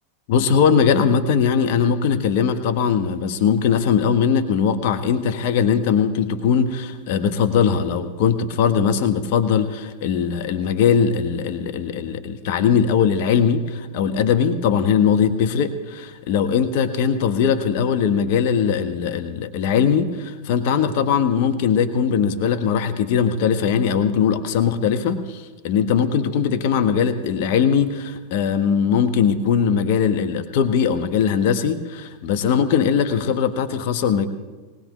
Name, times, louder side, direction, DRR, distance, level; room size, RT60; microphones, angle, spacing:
voice 1, 0.3-34.3, left 7 dB, 60° left, 8 dB, 1.0 m, -20 dB
19.5 x 19.0 x 3.1 m, 1.3 s
hypercardioid pair, 100°, 0 cm